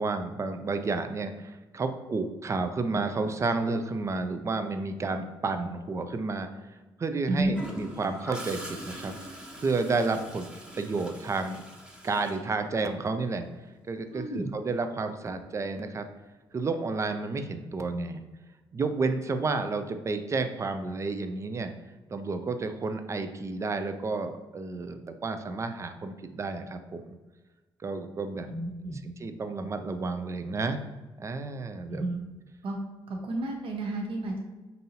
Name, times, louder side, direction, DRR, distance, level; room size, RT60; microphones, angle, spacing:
voice 1, 0.0-10.5 10.8-11.6 12.0-13.5 13.9-16.1 16.5-18.2 18.7-21.7 22.1-27.0 27.8-28.5 29.0-30.8 31.2-32.0, right 3 dB, 30° right, 8 dB, 0.4 m, -31 dB
Gurgling / Toilet flush, 7.5-13.3 15.3-15.5, right 1 dB, 10° right, 0.8 m, -43 dB
voice 2, 14.1-14.5 28.5-29.0 31.9-32.2 32.6-32.8 33.1-34.4, right 2 dB, 60° right, 1 dB, 1.0 m, -31 dB
5.3 x 2.7 x 2.8 m, 1.2 s
cardioid pair, 80°, 10 cm